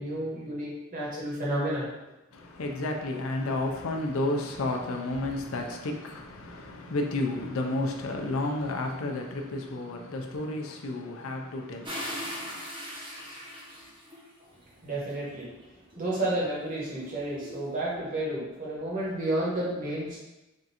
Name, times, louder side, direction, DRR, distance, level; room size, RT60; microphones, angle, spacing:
voice 1, 0.0-1.8 14.8-15.5 15.9-20.2, right 1 dB, 40° right, -6 dB, 1.3 m, -31 dB
voice 2, 2.3-12.6, left 2 dB, 90° left, 2 dB, 0.6 m, -32 dB
sound 1, 11.8-14.4 15.1-18.0, equal, 25° right, 0.9 m, -41 dB
3.6 x 2.6 x 4.2 m, 1.0 s
head